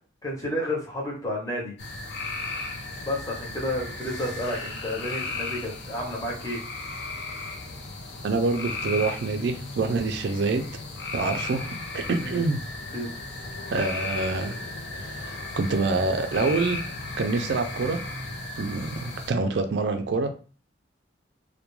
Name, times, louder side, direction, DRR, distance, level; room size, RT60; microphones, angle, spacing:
voice 1, 0.2-1.7 3.0-6.6 12.2-12.5 12.9-13.1, left 1 dB, 15° left, -3 dB, 0.7 m, -31 dB
sound 1, 1.8-19.3, left 3 dB, 65° left, 0.5 m, -35 dB
voice 2, 8.2-10.6 11.1-12.6 13.7-14.5 14.9-16.8 17.2-18.0 18.6-20.3, right 3 dB, 60° right, 6 dB, 0.4 m, -26 dB
2.2 x 2.1 x 3.0 m, 0.38 s
head